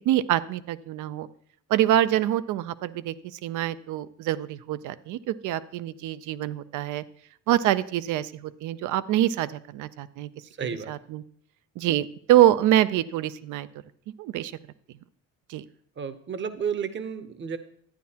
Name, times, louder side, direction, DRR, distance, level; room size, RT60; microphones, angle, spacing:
voice 1, 0.1-1.3 1.7-7.0 7.5-10.3 10.9-11.2 11.8-13.7 14.2-14.5 15.5-15.6, right 13 dB, 85° right, 16 dB, 0.5 m, -25 dB
voice 2, 10.6-10.9 16.0-17.6, right 7 dB, 40° right, 11 dB, 0.7 m, -31 dB
11.5 x 9.3 x 2.8 m, 0.62 s
cardioid pair, 90°, 30 cm